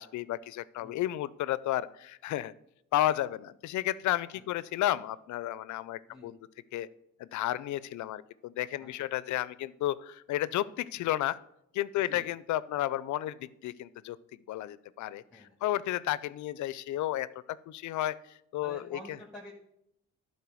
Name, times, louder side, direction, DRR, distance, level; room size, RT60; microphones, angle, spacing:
voice 1, 0.0-2.5 2.9-6.4 6.7-6.9 7.2-11.4 11.7-17.3 17.7-19.0, left 14 dB, 70° left, 18 dB, 0.5 m, -32 dB
voice 2, 18.6-19.5, left 1 dB, ahead, -1 dB, 1.7 m, -48 dB
11.5 x 4.4 x 6.2 m, 0.78 s
cardioid pair, 90°, 30 cm